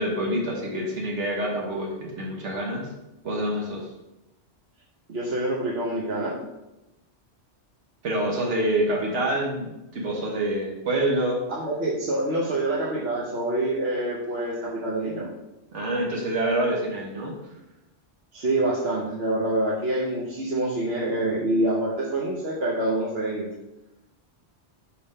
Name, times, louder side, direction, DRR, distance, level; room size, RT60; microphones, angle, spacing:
voice 1, 0.0-2.9 3.2-3.9 8.0-11.4 15.7-17.4, right 1 dB, 80° right, -3 dB, 1.4 m, -26 dB
voice 2, 5.1-6.4 11.5-15.3 18.3-23.5, right 1 dB, 60° right, -5 dB, 1.1 m, -26 dB
4.9 x 3.6 x 5.4 m, 0.96 s
omnidirectional pair, 1.2 m